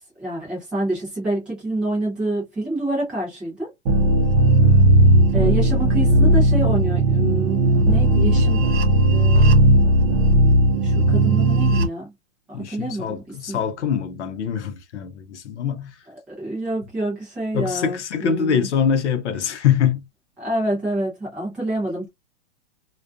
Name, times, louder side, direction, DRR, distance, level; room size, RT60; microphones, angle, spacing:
voice 1, 0.2-3.7 5.3-8.6 9.1-9.5 10.8-12.1 12.5-13.6 16.3-18.7 20.4-22.1, right 1 dB, 5° right, 0.4 m, -27 dB
sound 1, 3.9-11.9, right 1 dB, 45° right, 0.7 m, -16 dB
voice 2, 4.5-4.9 12.5-15.9 17.5-20.0, left 8 dB, 70° left, 0.7 m, -24 dB
2.4 x 2.3 x 2.3 m
hypercardioid pair, 160°, 36 cm